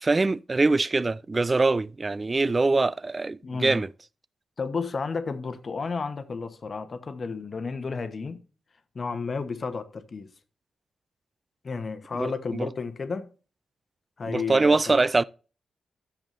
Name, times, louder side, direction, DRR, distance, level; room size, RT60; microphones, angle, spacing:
voice 1, 0.0-3.9 12.2-12.7 14.3-15.2, right 3 dB, 25° right, 0.3 m, -23 dB
voice 2, 3.4-3.8 4.6-8.4 8.9-10.3 11.6-13.3 14.2-15.0, left 4 dB, 35° left, 1.0 m, -32 dB
13.5 x 7.2 x 2.6 m
wide cardioid pair, 145°, 0 cm